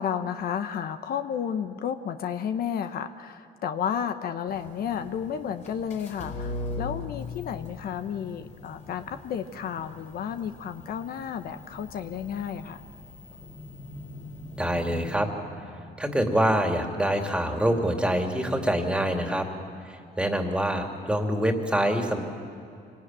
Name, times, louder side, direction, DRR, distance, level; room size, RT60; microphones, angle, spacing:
voice 1, 0.0-12.8, left 8 dB, 65° left, 9 dB, 1.0 m, -32 dB
TV ON, 4.5-15.1, left 2 dB, 45° left, 4.9 m, -41 dB
voice 2, 14.6-15.3 16.0-19.5 19.8-22.2, equal, 5° right, 3 dB, 2.7 m, -25 dB
25.5 x 18.5 x 9.0 m, 2.6 s
cardioid pair, 100°, 17 cm